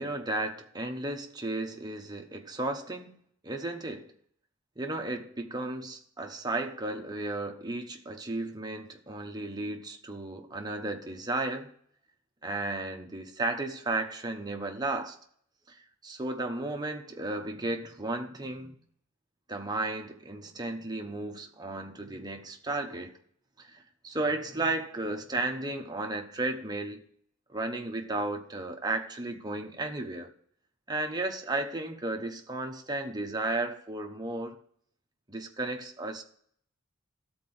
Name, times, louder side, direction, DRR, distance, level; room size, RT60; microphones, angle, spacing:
voice 1, 0.0-3.1 3.4-4.1 4.8-11.7 12.4-15.2 16.0-18.8 19.5-23.2 23.6-27.0 27.5-30.3 30.9-34.6 35.3-36.2, right 2 dB, 20° right, 1.0 m, -34 dB
13.0 x 4.4 x 7.9 m
head